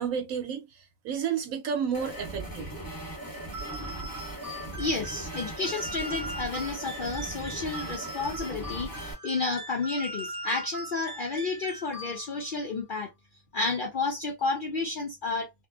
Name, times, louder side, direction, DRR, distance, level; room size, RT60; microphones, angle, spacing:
voice 1, 0.0-2.7, right 7 dB, 75° right, 1.0 m, -31 dB
sound 1, 1.9-9.1, right 1 dB, 15° left, 0.9 m, -39 dB
sound 2, 3.5-12.6, equal, 45° right, 0.9 m, -40 dB
voice 2, 4.7-13.1 13.5-15.6, left 3 dB, 75° left, 0.4 m, -31 dB
2.7 x 2.3 x 2.3 m
omnidirectional pair, 1.5 m